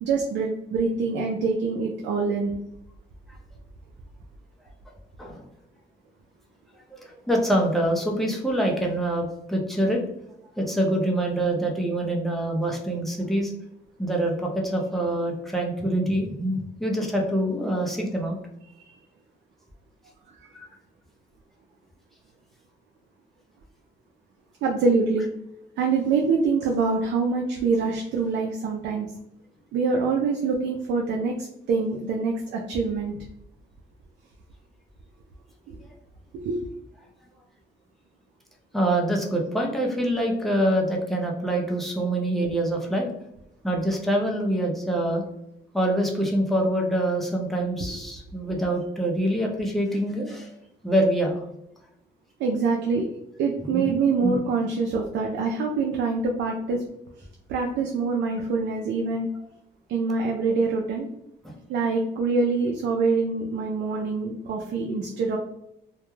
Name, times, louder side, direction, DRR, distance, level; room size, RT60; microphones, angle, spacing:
voice 1, 0.0-2.6 18.8-18.9 20.3-20.5 24.6-25.3 25.8-29.1 29.7-33.1 36.3-36.6 47.8-47.9 52.4-53.1 53.4-56.8 57.5-59.3 59.9-61.1 61.7-65.4, right 4 dB, 75° right, 1 dB, 0.4 m, -25 dB
voice 2, 6.9-10.0 10.6-13.5 14.0-18.4 38.7-43.1 43.6-45.2 45.7-50.5 50.8-51.4 53.7-53.9 54.2-54.4 61.4-61.5, right 1 dB, ahead, -1 dB, 0.5 m, -25 dB
2.2 x 2.1 x 3.0 m, 0.80 s
cardioid pair, 115°, 19 cm